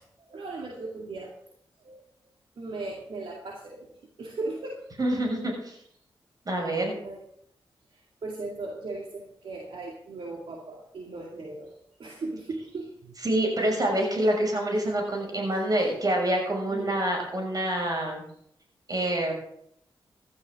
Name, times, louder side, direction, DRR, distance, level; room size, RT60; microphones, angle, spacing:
voice 1, 0.0-1.3 1.8-2.0 2.6-3.9 4.2-4.9 7.0-7.2 7.9-11.7 12.0-13.1 16.7-17.0, right 3 dB, 70° right, -1 dB, 2.3 m, -37 dB
voice 2, 5.0-5.7 6.4-7.0 13.2-18.2 18.9-19.3, right 1 dB, 45° right, 0 dB, 6.2 m, -26 dB
16.0 x 12.5 x 3.7 m, 0.70 s
cardioid pair, 70°, 9 cm